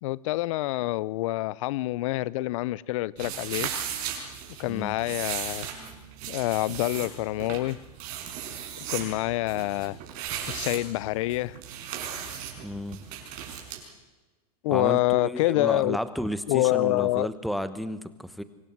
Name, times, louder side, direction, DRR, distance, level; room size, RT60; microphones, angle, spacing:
voice 1, 0.0-3.7 4.6-5.7 6.3-7.8 8.9-10.0 10.5-11.6 14.6-16.0 16.5-17.3, left 18 dB, 55° left, 23 dB, 0.7 m, -26 dB
sound 1, 3.2-13.8, right 9 dB, 40° right, 5.4 m, -36 dB
voice 2, 12.6-13.0 14.7-18.4, equal, ahead, 13 dB, 1.1 m, -32 dB
24.5 x 15.5 x 7.8 m, 1.2 s
supercardioid pair, 145°, 20 cm